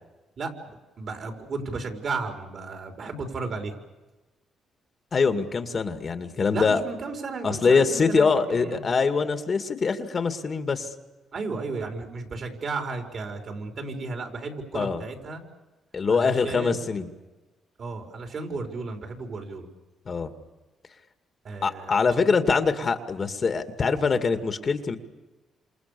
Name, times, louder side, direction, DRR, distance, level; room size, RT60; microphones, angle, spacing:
voice 1, 0.4-3.8 6.5-8.8 11.3-15.4 16.1-16.8 17.8-19.7 21.4-22.3, right 3 dB, 50° right, 4 dB, 5.5 m, -34 dB
voice 2, 5.1-6.8 7.4-10.9 14.7-15.0 15.9-17.1 20.1-20.3 21.6-25.0, left 5 dB, 40° left, 8 dB, 2.2 m, -23 dB
28.5 x 27.5 x 7.0 m, 1.2 s
cardioid pair, 90°, 0 cm